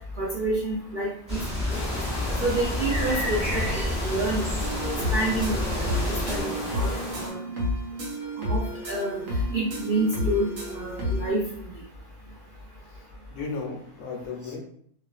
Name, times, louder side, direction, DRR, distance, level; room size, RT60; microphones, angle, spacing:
voice 1, 0.2-1.4 1.7-1.8 2.4-4.5 5.1-6.9 7.2-7.4 8.4-9.2 9.5-11.4, right 2 dB, 85° right, -5 dB, 0.4 m, -28 dB
sound 1, 1.3-6.4, left 1 dB, 5° right, 1.0 m, -30 dB
sound 2, 1.7-7.3, left 1 dB, 40° left, 0.8 m, -33 dB
sound 3, 4.6-11.3, left 1 dB, 70° right, 1.0 m, -31 dB
voice 2, 12.9-14.6, left 4 dB, 70° left, 0 dB, 0.9 m, -35 dB
2.4 x 2.4 x 2.3 m, 0.63 s
omnidirectional pair, 1.6 m